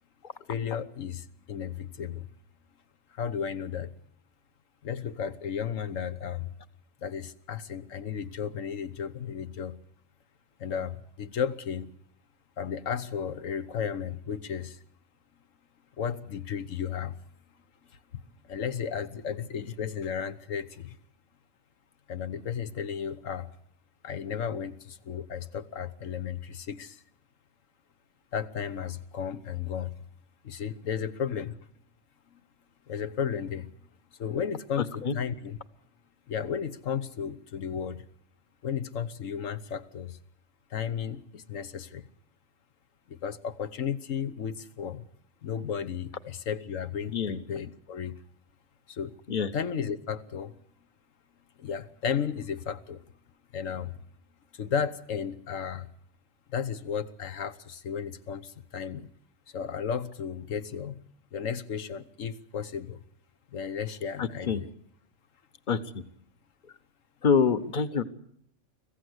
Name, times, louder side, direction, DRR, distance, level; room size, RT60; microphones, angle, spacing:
voice 1, 0.5-2.3 3.1-3.9 4.8-6.5 7.0-9.7 10.6-11.9 12.6-14.8 16.0-17.2 18.1-21.0 22.1-23.5 24.0-27.0 28.3-29.9 30.4-31.6 32.3-32.4 32.9-33.7 34.2-35.6 36.3-38.1 38.6-40.2 40.7-42.1 43.1-45.1 45.4-48.1 48.9-49.2 49.5-50.6 51.6-53.0 53.5-54.0 54.5-55.9 56.5-59.1 59.5-61.0 61.3-63.0 63.5-64.7, left 7 dB, 85° left, 12 dB, 1.4 m, -34 dB
voice 2, 64.2-64.6 65.7-66.0 67.2-68.0, left 6 dB, 40° left, 12 dB, 1.1 m, -26 dB
25.0 x 15.5 x 8.0 m, 0.71 s
omnidirectional pair, 1.3 m